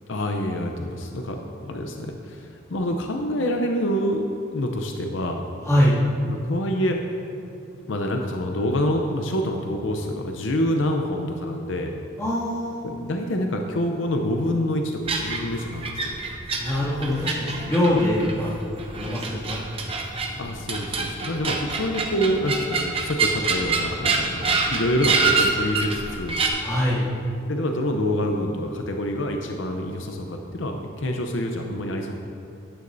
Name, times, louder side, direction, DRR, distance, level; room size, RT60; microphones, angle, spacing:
voice 1, 0.1-4.2 4.5-5.5 6.3-7.0 7.8-11.9 12.8-16.2 20.4-26.4 27.5-32.1, equal, 70° left, 3 dB, 0.7 m, -26 dB
voice 2, 5.6-6.0 12.2-12.9 16.6-18.6 18.9-19.6 20.0-20.1 20.3-20.4 26.6-27.1, left 1 dB, 15° left, -9 dB, 2.3 m, -23 dB
sound 1, 15.1-26.5, right 4 dB, 30° right, 0.8 m, -27 dB
13.5 x 9.7 x 2.7 m, 2.6 s
head